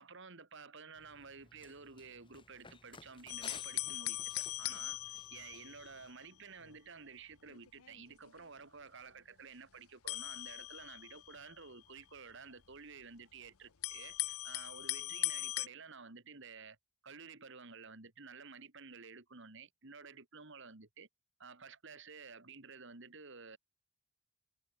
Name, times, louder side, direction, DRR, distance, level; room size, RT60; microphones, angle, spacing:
voice 1, 0.0-16.8 17.0-21.1 21.4-23.6, right 5 dB, 55° right, 2.1 m, -52 dB
Run, 0.9-6.1, left 5 dB, 25° left, 1.3 m, -57 dB
sound 1, 3.3-6.2 6.6-6.8 7.4-8.5 10.1-12.0 12.7-12.8 13.8-15.7, left 17 dB, 80° left, 0.8 m, -40 dB
head